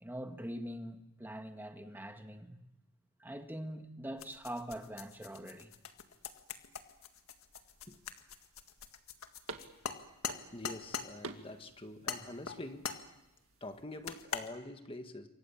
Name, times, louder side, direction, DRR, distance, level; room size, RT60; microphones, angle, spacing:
voice 1, 0.0-2.6 3.2-5.7, right 1 dB, 10° right, 1.7 m, -43 dB
sound 1, 4.2-11.1 12.1-13.1 14.1-14.5, left 6 dB, 65° left, 1.8 m, -42 dB
sound 2, 6.1-13.8, right 3 dB, 65° right, 2.1 m, -53 dB
voice 2, 10.5-12.9 13.6-15.3, left 2 dB, 25° left, 1.6 m, -46 dB
28.0 x 24.0 x 7.2 m
head